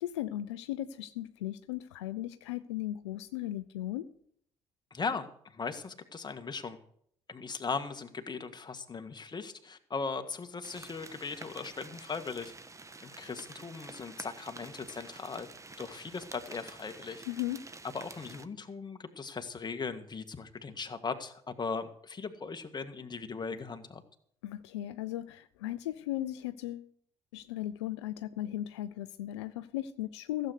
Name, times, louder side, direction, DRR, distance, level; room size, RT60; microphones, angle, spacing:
voice 1, 0.0-4.1 17.3-17.6 24.4-26.9 27.3-30.5, left 14 dB, 85° left, 12 dB, 0.6 m, -37 dB
voice 2, 4.9-6.8 7.3-12.5 13.0-15.5 15.8-17.3 17.9-24.0, left 4 dB, 30° left, 7 dB, 1.8 m, -38 dB
sound 1, 10.6-18.5, right 3 dB, 20° right, 1.3 m, -49 dB
15.5 x 7.9 x 6.5 m, 0.66 s
hypercardioid pair, 50°, 14 cm